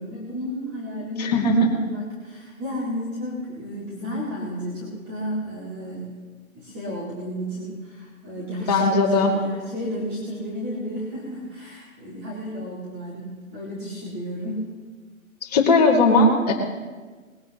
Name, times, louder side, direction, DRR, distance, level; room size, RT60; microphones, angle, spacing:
voice 1, 0.0-6.2 6.5-14.7, equal, 15° right, -6 dB, 2.4 m, -32 dB
voice 2, 1.2-1.7 8.7-9.3 15.4-16.5, left 2 dB, 30° left, -1 dB, 2.2 m, -18 dB
20.5 x 16.5 x 3.0 m, 1.4 s
hypercardioid pair, 155°, 42 cm